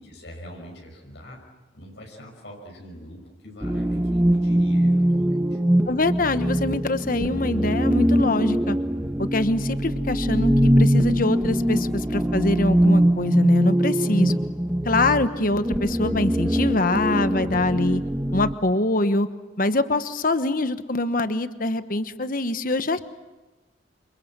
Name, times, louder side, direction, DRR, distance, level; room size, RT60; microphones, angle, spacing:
voice 1, 0.0-1.4 1.7-5.6, equal, 65° left, 1 dB, 6.0 m, -42 dB
sound 1, 3.6-18.5, equal, 10° right, 1.0 m, -22 dB
voice 2, 5.9-8.8 9.2-14.4 14.8-18.0 18.3-19.3 19.6-23.0, left 2 dB, 50° left, 11 dB, 1.1 m, -24 dB
28.5 x 27.5 x 7.4 m, 1.1 s
head